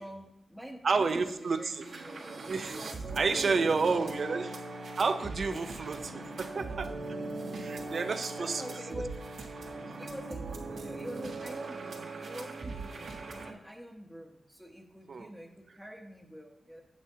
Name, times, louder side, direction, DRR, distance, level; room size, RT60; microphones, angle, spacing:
voice 1, 0.0-2.5 3.3-4.3 5.5-6.0 8.1-9.2 10.0-16.8, equal, ahead, 2 dB, 0.9 m, -46 dB
voice 2, 0.8-1.8 2.5-2.8 3.2-4.5 5.0-6.0 6.4-6.9 7.5-9.0 15.1-15.3, right 4 dB, 50° right, 9 dB, 0.5 m, -30 dB
sound 1, 1.2-1.3 1.6-13.5, right 3 dB, 75° right, 1.4 m, -40 dB
9.1 x 8.2 x 2.8 m, 0.84 s
wide cardioid pair, 150°, 0 cm